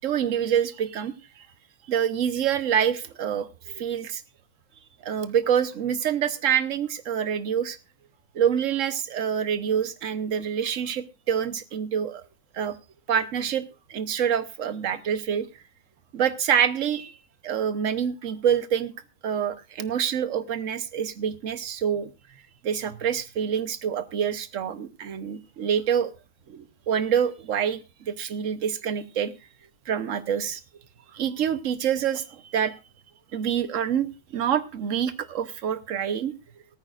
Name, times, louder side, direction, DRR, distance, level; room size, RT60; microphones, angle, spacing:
voice 1, 0.0-1.1 1.9-4.2 5.0-7.8 8.3-12.2 12.5-12.8 13.1-13.6 13.9-15.5 16.1-17.2 17.4-18.9 19.2-22.1 22.6-26.1 26.5-27.8 28.0-29.3 29.9-30.6 31.1-32.7 33.3-36.3, right 8 dB, 60° right, 12 dB, 1.2 m, -26 dB
17.5 x 14.0 x 2.5 m, 0.29 s
omnidirectional pair, 1.6 m